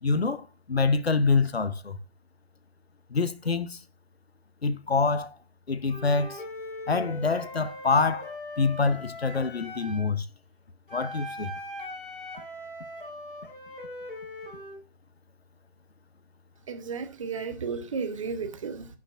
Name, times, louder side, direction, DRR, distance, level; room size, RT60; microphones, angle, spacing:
voice 1, 0.0-2.0 3.1-3.8 4.6-5.4 5.7-6.4 6.9-10.3 10.9-11.5, left 4 dB, 80° left, 0.8 m, -26 dB
Wind instrument woodwind instrument, 5.9-10.1 10.9-14.8, left 1 dB, 60° left, 3.4 m, -40 dB
voice 2, 16.7-18.9, right 5 dB, 30° right, 0.9 m, -33 dB
14.5 x 5.9 x 2.4 m
figure-of-eight pair, 140°, 31 cm